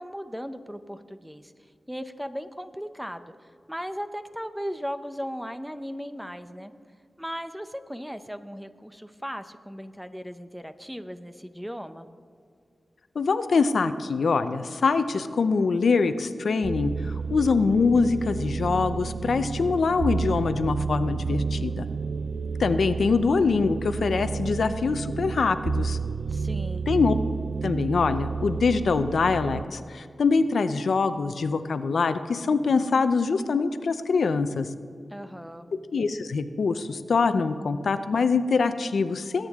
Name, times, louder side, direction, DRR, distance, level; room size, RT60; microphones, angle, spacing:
voice 1, 0.0-1.5 1.9-3.2 3.7-6.7 7.2-12.1 26.3-26.9 35.1-35.7, equal, 5° right, 10 dB, 0.6 m, -37 dB
voice 2, 13.2-21.9 22.6-26.0 26.9-27.1 27.6-34.7 35.9-39.5, left 4 dB, 90° left, 10 dB, 0.6 m, -24 dB
sound 1, 16.6-29.6, right 5 dB, 75° right, 0.3 m, -31 dB
20.5 x 8.9 x 3.6 m, 2.3 s
wide cardioid pair, 90°, 0 cm